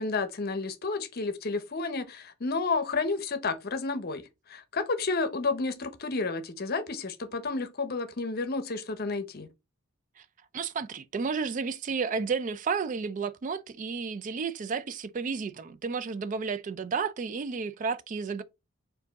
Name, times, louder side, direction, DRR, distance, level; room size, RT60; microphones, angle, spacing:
voice 1, 0.0-9.5, left 3 dB, 45° left, 0.7 m, -31 dB
voice 2, 10.5-18.4, right 5 dB, 35° right, 0.3 m, -32 dB
4.5 x 2.6 x 3.9 m
head